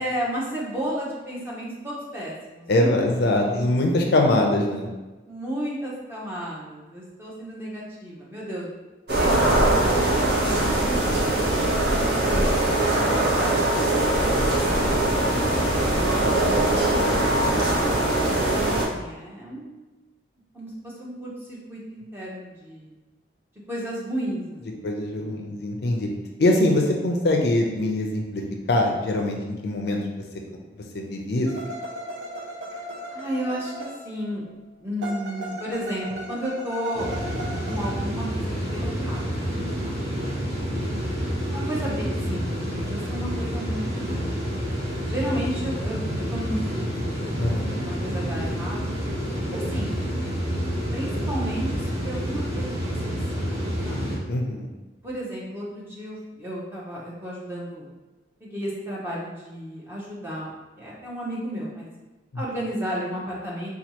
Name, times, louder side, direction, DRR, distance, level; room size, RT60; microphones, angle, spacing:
voice 1, 0.0-3.1 3.5-3.7 5.3-8.7 9.2-12.4 12.9-13.7 14.1-17.8 18.5-19.9 20.5-22.9 23.7-25.4 32.7-32.8 33.1-34.4 34.8-37.1 37.6-40.3 41.4-44.6 45.0-47.2 47.8-48.9 49.5-49.9 50.9-53.5 53.8-54.2 55.0-57.9 58.4-61.9 62.3-63.7, equal, 10° right, -5 dB, 0.7 m, -33 dB
voice 2, 2.7-4.9 24.8-26.1 26.4-28.4 28.7-30.0 30.9-31.5 40.7-41.0 47.4-47.9 54.3-54.7, left 1 dB, 55° left, 1 dB, 0.4 m, -23 dB
sound 1, 9.1-18.9, right 1 dB, 60° right, 0.9 m, -21 dB
sound 2, 31.5-34.4 35.0-37.9, right 1 dB, 80° right, 0.5 m, -37 dB
sound 3, 36.9-54.2, equal, 30° right, 1.1 m, -28 dB
4.3 x 2.3 x 2.8 m, 1.2 s
head